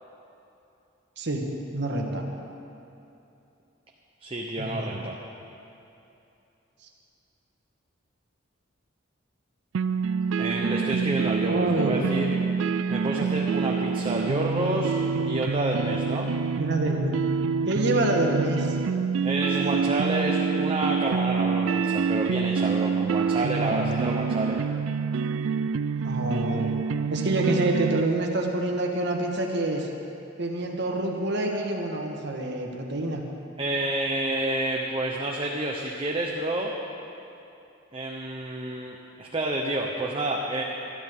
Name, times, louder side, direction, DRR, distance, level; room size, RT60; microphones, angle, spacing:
voice 1, 1.2-2.2 4.6-5.0 11.5-12.1 16.6-17.2 17.6-18.8 23.6-23.9 26.0-26.8 27.1-29.9 30.4-33.2, right 2 dB, 60° right, 1 dB, 1.6 m, -27 dB
voice 2, 4.2-5.2 10.4-12.3 12.6-14.9 15.2-16.3 19.2-24.6 33.6-36.7 37.9-40.6, right 1 dB, 30° right, -1 dB, 1.0 m, -29 dB
sound 1, 9.7-28.0, right 5 dB, 85° right, 0.4 m, -27 dB
20.0 x 13.0 x 3.8 m, 2.8 s
head